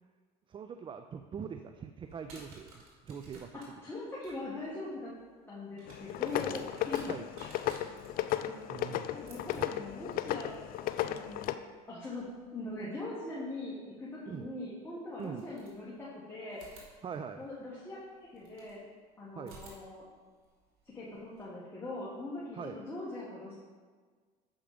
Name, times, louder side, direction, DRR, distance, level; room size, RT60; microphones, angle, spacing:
voice 1, 0.5-3.6 7.0-7.3 8.7-9.1 9.5-9.7 14.3-14.5 15.2-15.5 17.0-17.4 19.3-19.6 22.5-22.8, right 7 dB, 25° right, 8 dB, 0.4 m, -42 dB
sound 1, 2.1-12.9 14.3-14.4 15.1-16.1 16.5-18.8 19.4-21.4, right 2 dB, 85° right, 2.1 m, -57 dB
voice 2, 3.8-5.1 5.5-7.0 8.4-8.5 9.1-10.5 11.0-11.4 11.9-12.2 12.5-16.6 17.4-18.8 19.2-20.0 20.9-23.6, left 2 dB, 15° left, -8 dB, 1.7 m, -41 dB
sound 2, 5.9-11.5, left 12 dB, 55° left, 0.4 m, -35 dB
7.1 x 5.0 x 5.0 m, 1.5 s
supercardioid pair, 90°, 18 cm